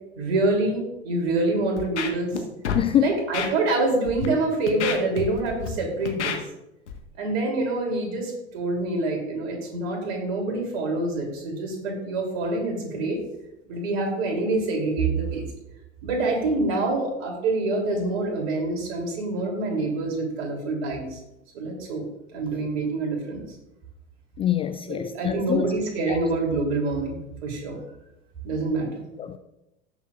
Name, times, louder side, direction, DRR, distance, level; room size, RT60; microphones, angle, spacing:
voice 1, 0.1-2.3 3.0-6.4 7.2-13.2 13.7-15.4 16.0-21.2 21.5-22.0 22.3-23.4 24.9-27.8 28.4-29.0, right 2 dB, 55° right, 3.2 m, -26 dB
Scratching (performance technique), 1.8-2.4 2.6-2.8 3.3-3.5 4.0-4.3 4.7-5.7 6.1-6.4 6.9-7.0, left 7 dB, 70° left, 1.5 m, -28 dB
voice 2, 2.7-3.1 24.4-25.7 26.1-26.2 29.2-29.4, left 10 dB, 15° left, 0.4 m, -24 dB
17.0 x 6.9 x 2.5 m
figure-of-eight pair, 85°, 36 cm